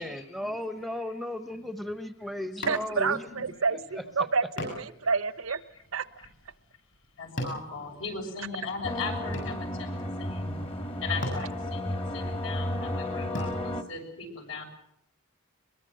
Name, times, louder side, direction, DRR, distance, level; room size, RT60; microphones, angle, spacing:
voice 1, 0.0-3.3 3.7-3.8 4.2-4.3, left 1 dB, ahead, 9 dB, 0.9 m, -35 dB
sound 1, 2.6-3.2 3.5-3.6 4.6-8.5 8.8-10.0 10.7-10.8 11.1-13.4, left 1 dB, 60° left, 7.7 m, -40 dB
voice 2, 2.7-5.6 5.9-6.3, right 4 dB, 80° right, 14 dB, 1.0 m, -29 dB
voice 3, 7.2-9.9 10.2-10.6 11.0-14.6, left 4 dB, 75° left, 3 dB, 7.0 m, -38 dB
sound 2, 8.8-13.8, left 1 dB, 25° left, 1.4 m, -33 dB
23.0 x 22.5 x 7.8 m, 0.74 s
head